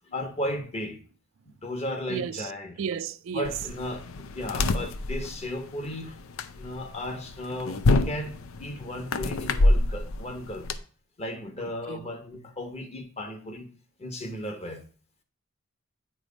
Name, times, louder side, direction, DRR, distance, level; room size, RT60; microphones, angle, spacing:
voice 1, 0.1-1.0 1.6-2.8 3.3-6.2 6.6-10.7 11.2-13.7 14.0-14.8, left 1 dB, 30° left, 1.0 m, -35 dB
voice 2, 2.1-2.5 2.8-3.6 5.2-5.3 11.9-12.1, right 7 dB, 70° right, 0.4 m, -33 dB
sound 1, 3.4-10.8, left 2 dB, 90° left, 0.5 m, -27 dB
8.7 x 3.3 x 5.1 m
head